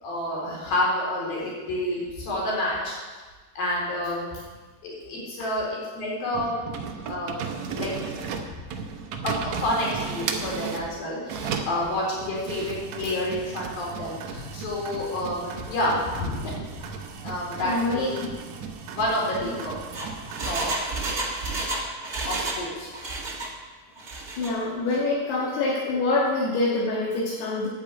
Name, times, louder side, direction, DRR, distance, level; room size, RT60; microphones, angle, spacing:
voice 1, 0.0-3.0 3.6-4.3 4.8-5.7 5.9-6.8 7.1-7.9 9.2-16.5 17.2-18.1 18.9-19.7 20.0-20.1 20.4-20.7 22.3-22.9, left 1 dB, 60° left, -4 dB, 5.6 m, -29 dB
sound 1, 6.3-10.9 11.3-20.8, right 6 dB, 70° right, 1.6 m, -35 dB
voice 2, 17.6-18.1 19.4-19.5 21.6-21.7 24.4-27.7, left 2 dB, 80° left, -4 dB, 3.7 m, -25 dB
Engine, 19.7-22.7 22.9-23.5 24.0-24.5 24.9-25.0, right 2 dB, 40° right, 1.3 m, -31 dB
10.0 x 8.9 x 8.4 m, 1.4 s
omnidirectional pair, 4.6 m